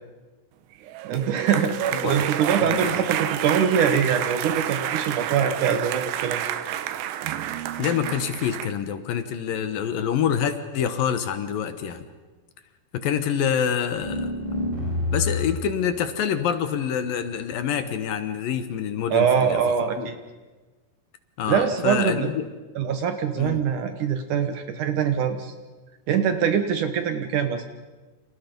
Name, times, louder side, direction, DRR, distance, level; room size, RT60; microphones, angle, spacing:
sound 1, 0.8-8.7, right 11 dB, 90° right, 3.2 m, -29 dB
voice 1, 1.0-6.4 19.1-20.2 21.5-22.3 22.8-25.5 26.1-27.6, right 7 dB, 65° right, 8 dB, 2.2 m, -23 dB
voice 2, 2.6-2.9 7.8-12.0 12.9-14.3 15.1-19.6 20.0-20.1 21.4-22.5 23.4-23.6, left 8 dB, 70° left, 10 dB, 2.7 m, -26 dB
sound 2, 13.9-15.7, left 2 dB, 15° right, 4.7 m, -27 dB
29.5 x 27.0 x 5.3 m, 1.3 s
omnidirectional pair, 4.7 m